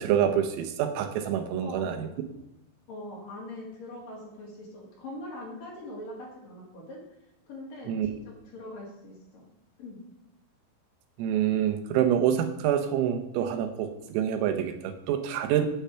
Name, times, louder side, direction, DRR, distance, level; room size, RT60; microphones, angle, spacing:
voice 1, 0.0-2.1 7.9-8.1 11.2-15.7, right 9 dB, 85° right, 7 dB, 3.8 m, -26 dB
voice 2, 1.6-2.1 2.9-7.0 7.5-9.5 9.8-10.0, left 1 dB, 50° left, -2 dB, 3.6 m, -42 dB
10.5 x 8.9 x 5.7 m, 0.92 s
omnidirectional pair, 5.9 m